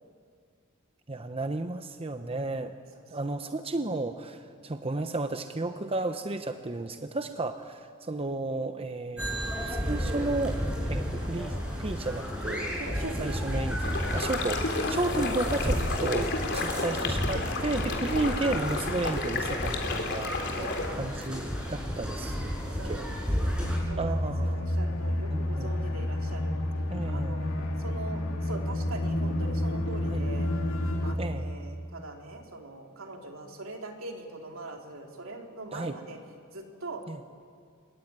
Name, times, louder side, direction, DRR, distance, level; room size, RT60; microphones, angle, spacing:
voice 1, 1.1-2.8 3.1-10.6 10.9-12.8 13.2-20.6 20.9-22.5 22.8-23.0 24.0-24.6 25.3-25.7 26.9-27.4 30.0-30.3 31.2-31.5 35.7-36.0 37.1-37.2, right 2 dB, 25° right, 8 dB, 0.8 m, -33 dB
voice 2, 3.0-3.4 12.8-13.6 14.1-14.4 20.6-21.0 22.8-26.6 27.1-30.5 31.0-36.2 36.5-37.0, right 2 dB, 70° right, 2 dB, 3.3 m, -42 dB
sound 1, 9.2-23.8, equal, 5° right, 6.2 m, -32 dB
sound 2, 13.8-20.9, left 3 dB, 55° left, 3.5 m, -32 dB
sound 3, 23.6-31.1, left 1 dB, 70° left, 2.5 m, -30 dB
26.0 x 22.5 x 9.5 m, 2.2 s
head